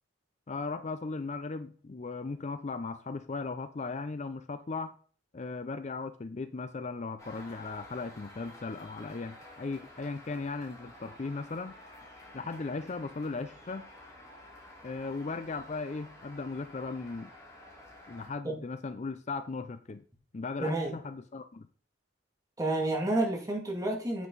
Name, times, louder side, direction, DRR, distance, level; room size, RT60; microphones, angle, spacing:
voice 1, 0.5-4.9 5.3-11.7 12.3-13.9 14.8-17.3 18.1-20.0 20.3-21.7, left 3 dB, 35° left, 0.5 m, -37 dB
sound 1, 7.2-18.3, left 1 dB, 15° left, 3.5 m, -51 dB
voice 2, 20.6-20.9 22.6-24.3, right 2 dB, 20° right, 2.4 m, -30 dB
9.3 x 7.6 x 4.0 m
head